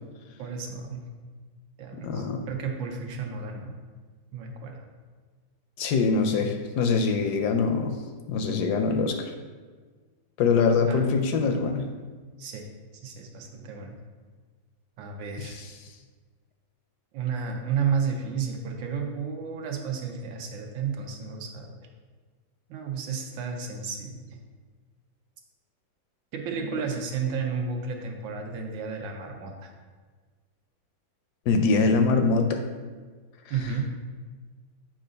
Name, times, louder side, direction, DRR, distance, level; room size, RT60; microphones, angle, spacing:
voice 1, 0.4-1.1 1.8-3.7 4.3-4.8 10.9-11.0 12.4-12.7 13.0-14.0 15.0-15.6 17.1-21.8 22.7-24.4 26.3-29.7 33.5-33.9, right 6 dB, 90° right, 2 dB, 1.5 m, -32 dB
voice 2, 1.9-2.4 5.8-8.0 8.3-9.3 10.4-11.9 15.4-15.7 26.7-26.8 31.5-32.6, left 4 dB, 75° left, 5 dB, 1.0 m, -24 dB
7.4 x 2.5 x 5.1 m, 1.5 s
omnidirectional pair, 2.0 m